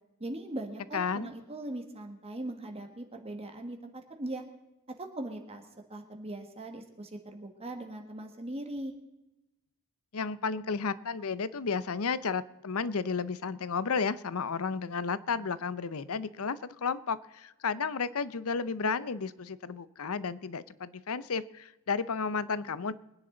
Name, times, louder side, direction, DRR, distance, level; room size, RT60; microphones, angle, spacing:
voice 1, 0.2-4.4 5.0-5.6 5.9-8.9, right 1 dB, 30° right, 4 dB, 1.6 m, -40 dB
voice 2, 0.9-1.3 10.1-22.9, left 5 dB, 75° left, 16 dB, 0.7 m, -32 dB
23.0 x 10.0 x 3.9 m, 0.98 s
head